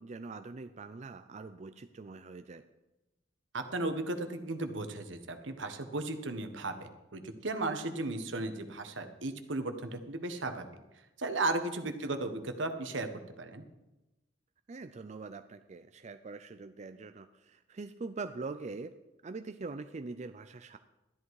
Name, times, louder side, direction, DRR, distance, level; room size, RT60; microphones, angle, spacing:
voice 1, 0.0-2.6 14.7-18.9 19.2-20.8, right 3 dB, 40° right, 9 dB, 0.4 m, -43 dB
voice 2, 3.5-10.7 11.2-13.1 13.4-13.6, right 2 dB, 80° right, 7 dB, 1.3 m, -35 dB
13.0 x 11.0 x 4.7 m, 1.0 s
head